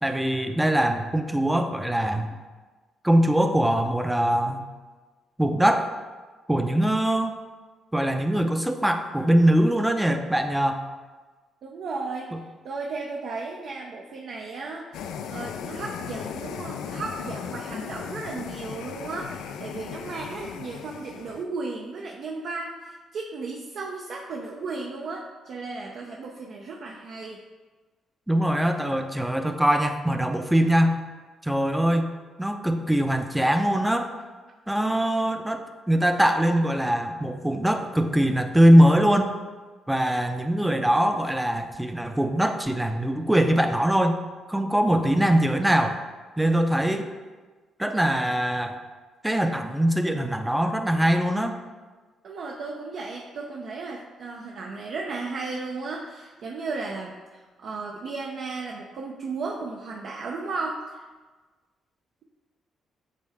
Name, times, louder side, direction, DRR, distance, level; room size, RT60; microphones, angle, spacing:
voice 1, 0.0-2.4 3.0-4.6 5.4-5.9 6.5-7.4 7.9-10.8 12.3-12.4 28.3-31.0 31.4-32.1 32.4-34.1 34.7-39.3 39.9-44.2 44.5-46.0 46.4-47.1 47.8-48.7 49.2-51.6, right 1 dB, 5° right, 6 dB, 0.5 m, -22 dB
voice 2, 11.6-12.3 12.6-27.4 52.2-61.0, right 3 dB, 65° right, -1 dB, 0.6 m, -35 dB
sound 1, 14.9-21.4, left 7 dB, 85° left, 0.3 m, -36 dB
8.4 x 3.6 x 3.4 m, 1.3 s
cardioid pair, 90°, 0 cm